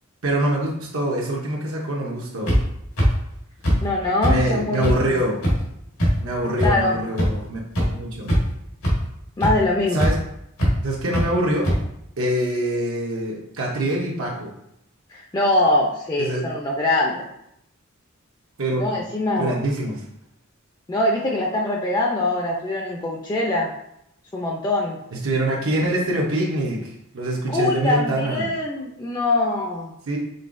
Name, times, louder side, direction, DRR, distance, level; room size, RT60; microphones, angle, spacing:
voice 1, 0.2-2.6 4.3-5.4 6.2-8.3 9.9-10.2 10.8-11.7 12.2-14.5 16.2-16.4 18.6-18.9 19.4-20.1 25.1-28.5 30.1-30.2, right 1 dB, 70° right, -2 dB, 0.8 m, -24 dB
sound 1, 2.5-2.6 3.0-3.1 3.6-3.7 4.2-4.3 4.8-4.9 5.4-5.5 6.0-6.1 6.6-6.7 7.2-7.3 7.7-7.8 8.2-8.5 8.8-8.9 9.4-9.5 10.0-10.1 10.6-10.7 11.1-11.2 11.6-11.7, equal, 90° left, 1.6 m, -19 dB
voice 2, 3.8-5.1 6.6-7.0 9.4-10.1 15.1-17.3 18.8-19.5 20.9-23.7 24.3-25.0 27.5-29.9, left 2 dB, 20° left, -1 dB, 0.4 m, -23 dB
5.4 x 3.8 x 2.5 m, 0.78 s
head